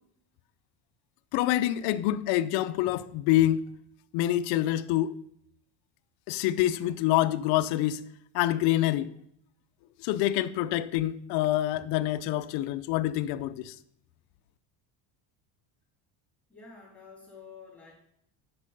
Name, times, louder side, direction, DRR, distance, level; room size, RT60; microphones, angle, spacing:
voice 1, 1.3-3.6 4.1-5.1 6.3-8.0 8.3-9.1 10.0-13.8, left 14 dB, 65° left, 0.6 m, -26 dB
voice 2, 16.5-17.9, left 5 dB, 5° left, 2.8 m, -49 dB
8.7 x 5.3 x 5.3 m
cardioid pair, 140°, 44 cm